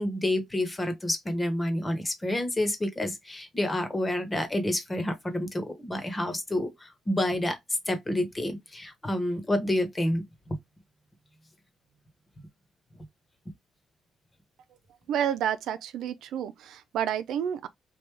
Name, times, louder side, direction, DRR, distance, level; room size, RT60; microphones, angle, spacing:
voice 1, 0.0-7.6 7.9-10.2, left 1 dB, 20° left, 1.2 m, -29 dB
voice 2, 15.1-17.7, right 9 dB, 80° right, 0.4 m, -30 dB
3.3 x 2.5 x 3.4 m
cardioid pair, 90°, 0 cm